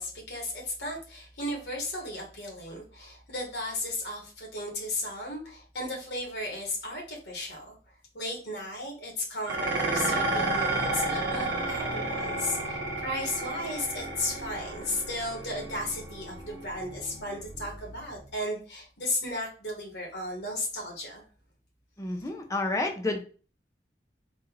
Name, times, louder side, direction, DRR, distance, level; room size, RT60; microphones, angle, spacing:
voice 1, 0.0-7.8 8.1-21.2 22.2-22.3, left 1 dB, 65° left, -1 dB, 1.8 m, -35 dB
Dishes pots and pans, 9.5-18.3, right 2 dB, 85° right, 1.0 m, -32 dB
voice 2, 22.0-23.2, left 2 dB, 20° left, 4 dB, 0.6 m, -30 dB
4.1 x 2.6 x 3.9 m, 0.38 s
head